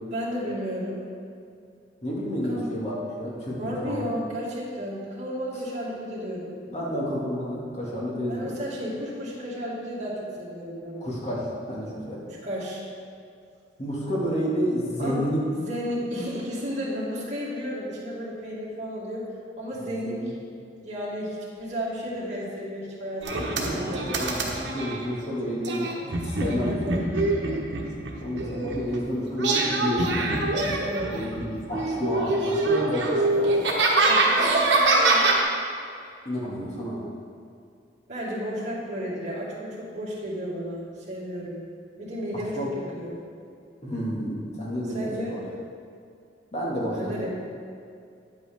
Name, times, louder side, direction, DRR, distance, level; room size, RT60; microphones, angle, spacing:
voice 1, 0.1-1.0 2.5-2.6 3.6-6.5 8.3-11.1 12.3-12.8 15.0-19.3 19.6-20.2 20.8-24.2 26.6-27.1 30.5-31.1 34.0-35.3 38.1-41.6 42.0-43.2 44.9-45.4 46.9-47.3, equal, 40° right, -7 dB, 2.1 m, -33 dB
voice 2, 2.0-4.1 6.7-8.6 11.0-12.2 13.8-15.4 19.7-20.3 23.4-27.1 28.2-30.4 31.1-33.7 36.3-37.0 42.6-42.7 43.8-45.4 46.5-47.3, equal, 35° left, -5 dB, 2.0 m, -30 dB
sound 1, 23.2-25.0 25.6-28.9 29.4-31.5 31.7-35.4, right 2 dB, 75° right, 1.2 m, -24 dB
9.4 x 8.0 x 3.6 m, 2.4 s
head